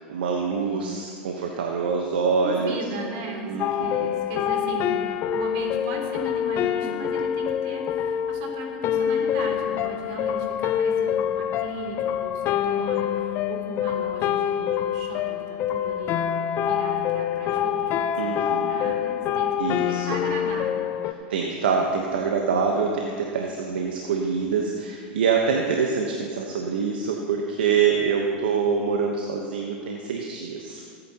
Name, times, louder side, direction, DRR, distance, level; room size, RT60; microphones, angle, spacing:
voice 1, 0.0-2.8 3.5-4.1 18.2-19.0 19.6-20.1 21.0-30.9, right 5 dB, 80° right, 1 dB, 1.1 m, -25 dB
voice 2, 0.6-1.0 2.4-16.2 16.6-19.6 19.9-21.0, right 2 dB, 65° right, 0 dB, 3.2 m, -37 dB
sound 1, 3.6-21.1, left 9 dB, 45° left, 0.6 m, -26 dB
20.5 x 9.3 x 3.0 m, 2.1 s
hypercardioid pair, 100°, 5 cm